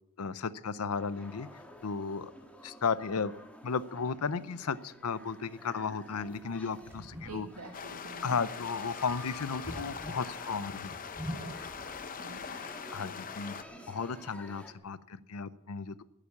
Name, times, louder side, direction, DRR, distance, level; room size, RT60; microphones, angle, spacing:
voice 1, 0.2-2.3 2.6-3.4 3.6-7.5 8.2-10.9 12.9-13.6 13.9-16.0, left 5 dB, 70° left, 17 dB, 0.6 m, -34 dB
sound 1, 0.9-14.7, equal, 5° left, 1.7 m, -51 dB
sound 2, 6.2-12.5, equal, 10° right, 2.5 m, -46 dB
voice 2, 7.2-8.3 11.3-11.8 12.1-12.6, right 2 dB, 80° right, 1 dB, 1.6 m, -48 dB
sound 3, 7.7-13.6, left 6 dB, 40° left, 0.7 m, -42 dB
12.0 x 10.0 x 8.4 m, 0.85 s
head